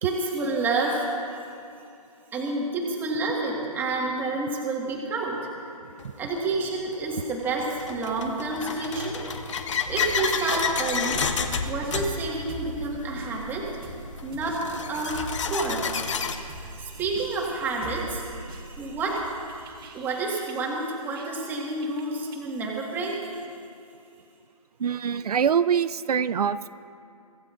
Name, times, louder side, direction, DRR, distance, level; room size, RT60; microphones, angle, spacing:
voice 1, 0.0-1.5 2.3-5.5 6.2-9.2 9.9-11.3 11.6-13.9 14.2-15.9 16.2-19.4 19.6-23.4, right 3 dB, 10° right, -2 dB, 1.6 m, -29 dB
sound 1, 6.0-6.1 6.9-16.4, left 6 dB, 50° left, 1.1 m, -30 dB
sound 2, 9.9-21.5 21.8-22.5, right 2 dB, 35° right, 1.6 m, -41 dB
voice 2, 24.8-26.7, right 7 dB, 80° right, 15 dB, 0.4 m, -24 dB
24.5 x 15.0 x 2.5 m, 2.6 s
hypercardioid pair, 155°, 19 cm